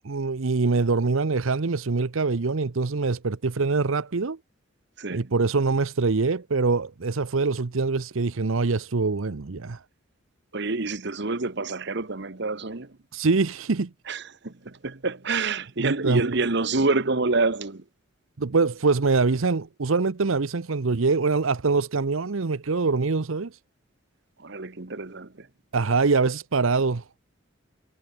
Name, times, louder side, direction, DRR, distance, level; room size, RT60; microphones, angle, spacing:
voice 1, 0.0-4.4 5.1-9.8 13.1-13.9 15.8-16.3 18.4-23.6 25.7-27.0, right 4 dB, 75° right, 0.8 m, -24 dB
voice 2, 5.0-5.3 10.5-13.0 14.1-17.8 24.4-25.5, right 3 dB, 55° right, 1.2 m, -27 dB
head